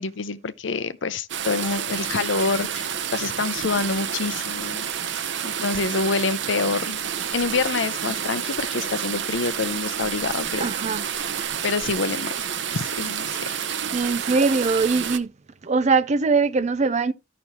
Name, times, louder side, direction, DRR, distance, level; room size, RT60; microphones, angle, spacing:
voice 1, 0.0-7.0 7.3-10.7 11.1-11.3 11.6-12.5 12.7-13.5, left 4 dB, 75° left, 0.7 m, -27 dB
sound 1, 1.3-15.2, right 8 dB, 70° right, 0.8 m, -29 dB
voice 2, 10.6-11.1 13.9-15.3 15.6-17.1, right 4 dB, 40° right, 0.5 m, -21 dB
13.5 x 6.1 x 2.8 m
head